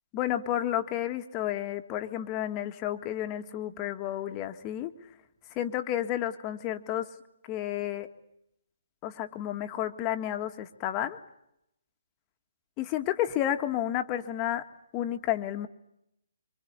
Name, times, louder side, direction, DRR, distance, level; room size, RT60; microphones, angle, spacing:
voice 1, 0.1-4.9 5.6-7.1 7.5-8.1 9.0-11.2 12.8-14.6 14.9-15.7, left 12 dB, 25° left, 7 dB, 1.9 m, -31 dB
26.0 x 25.0 x 8.3 m, 0.79 s
figure-of-eight pair, 135°, 0 cm